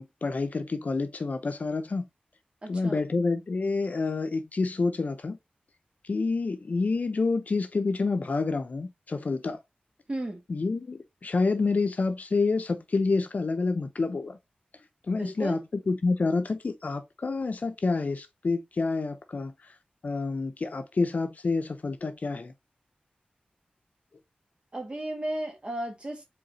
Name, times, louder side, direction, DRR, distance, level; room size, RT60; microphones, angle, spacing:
voice 1, 0.0-2.0 2.7-5.4 6.1-9.6 10.5-14.4 15.1-15.6 15.9-19.5 20.0-22.5, left 3 dB, 55° left, 0.7 m, -28 dB
voice 2, 2.6-3.0 10.1-10.4 15.1-15.6 24.7-26.2, right 1 dB, 35° right, 1.5 m, -34 dB
4.8 x 3.5 x 2.8 m
wide cardioid pair, 90°, 3 cm